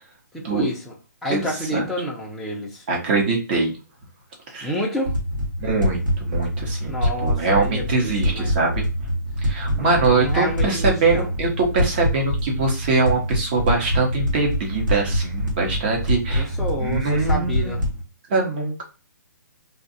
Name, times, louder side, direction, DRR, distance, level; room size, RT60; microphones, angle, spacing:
voice 1, 0.3-0.9 1.2-2.8 4.6-5.1 6.8-8.5 9.7-11.3 16.3-17.8, equal, ahead, -4 dB, 0.6 m, -29 dB
voice 2, 2.9-3.7 4.5-4.7 5.6-8.8 9.4-16.5 16.8-17.8 18.3-18.8, right 3 dB, 30° right, 0 dB, 1.0 m, -23 dB
sound 1, 5.0-18.0, equal, 80° right, 1.5 m, -25 dB
2.7 x 2.4 x 4.0 m, 0.32 s
hypercardioid pair, 165°, 10 cm